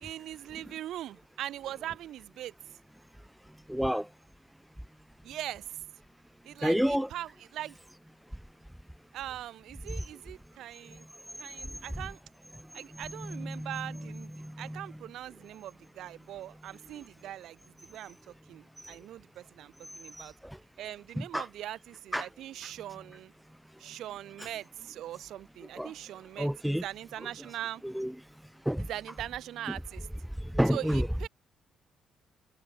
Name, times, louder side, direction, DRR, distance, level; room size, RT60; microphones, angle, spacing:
voice 1, 0.0-2.5 5.2-5.8 6.4-7.8 9.1-11.1 11.4-12.2 12.7-20.3 20.8-23.3 23.8-26.5 26.8-27.8 28.9-30.1 30.7-31.3, right 12 dB, 75° right, 2.3 m, -41 dB
voice 2, 3.7-4.1 6.6-7.1 9.9-10.0 10.9-11.0 11.7-11.8 13.1-14.9 18.8-18.9 20.1-20.6 21.2-21.4 22.1-22.3 25.8-25.9 26.4-26.8 27.8-28.1 28.7-28.9 30.4-31.1, equal, 5° right, 0.7 m, -30 dB
cardioid pair, 75°, 0 cm